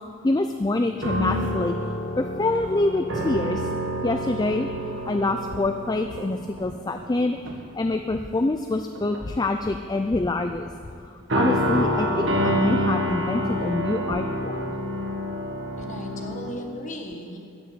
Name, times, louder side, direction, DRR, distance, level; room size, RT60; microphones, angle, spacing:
voice 1, 0.2-1.8 2.2-3.7 4.0-4.7 5.1-7.4 7.7-10.7 11.0-14.7, left 2 dB, 20° left, 7 dB, 0.3 m, -26 dB
sound 1, 1.0-7.1 7.5-7.7 8.7-9.4 11.3-16.5, equal, 60° right, 1.8 m, -27 dB
voice 2, 15.8-17.4, equal, 35° left, 2 dB, 1.5 m, -36 dB
13.5 x 6.5 x 9.1 m, 2.5 s
head